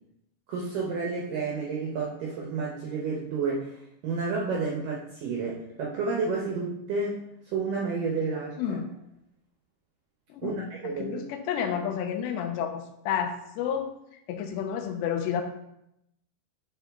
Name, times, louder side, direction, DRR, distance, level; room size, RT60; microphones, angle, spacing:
voice 1, 0.5-7.2 7.5-8.5 10.4-11.2, right 4 dB, 75° right, -2 dB, 2.0 m, -30 dB
voice 2, 8.6-8.9 10.3-13.9 14.3-15.4, left 8 dB, 90° left, 6 dB, 2.9 m, -30 dB
11.5 x 3.9 x 3.5 m, 0.82 s
omnidirectional pair, 5.0 m